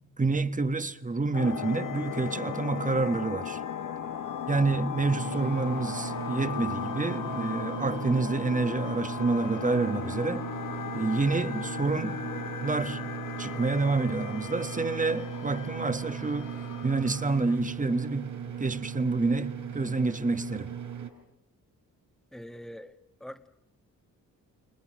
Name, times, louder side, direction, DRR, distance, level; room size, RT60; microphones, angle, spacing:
voice 1, 0.2-3.6 4.5-10.4 10.9-12.2 12.6-13.1 13.4-16.6 16.8-20.7, right 3 dB, 20° right, 1.4 m, -28 dB
sound 1, 1.3-17.6, left 8 dB, 60° left, 1.5 m, -37 dB
sound 2, 5.1-21.1, right 8 dB, 60° right, 5.2 m, -38 dB
voice 2, 22.3-22.9 23.2-23.5, equal, ahead, 1.5 m, -43 dB
30.0 x 27.0 x 6.3 m
cardioid pair, 115°, 35 cm